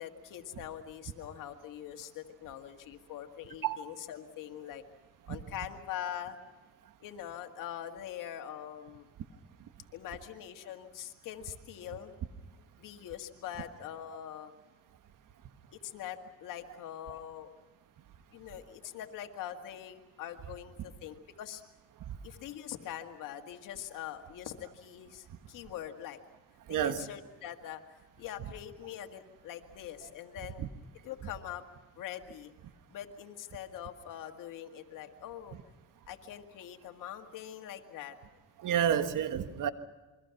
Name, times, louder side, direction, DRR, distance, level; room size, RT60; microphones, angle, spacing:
voice 1, 0.0-4.8 5.3-6.4 7.0-9.1 9.9-12.1 12.8-14.5 15.7-17.5 18.3-21.6 22.2-26.2 26.7-27.8 28.2-30.6 31.0-31.6 32.0-32.5 32.9-35.6 36.1-38.2, left 11 dB, 90° left, 2.0 m, -43 dB
voice 2, 26.7-27.0 30.6-30.7 38.6-39.7, right 9 dB, 80° right, 1.6 m, -29 dB
28.0 x 23.0 x 5.9 m
cardioid pair, 70°, 31 cm